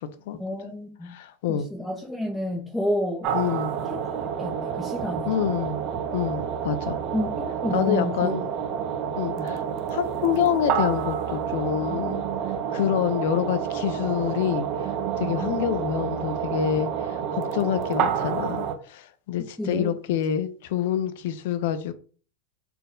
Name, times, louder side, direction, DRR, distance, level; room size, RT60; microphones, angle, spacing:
voice 1, 0.4-1.1 1.5-3.3 4.1-5.3 7.1-8.3 9.4-9.5 19.6-19.9, left 1 dB, 5° left, 0.5 m, -29 dB
voice 2, 1.0-1.7 3.3-3.7 5.3-5.8 6.1-7.0 7.7-8.5 9.2-12.2 12.7-14.7 15.2-21.9, left 9 dB, 65° left, 0.5 m, -27 dB
sound 1, 3.2-18.7, right 8 dB, 40° right, 0.5 m, -29 dB
4.2 x 2.2 x 3.7 m
supercardioid pair, 150°, 0 cm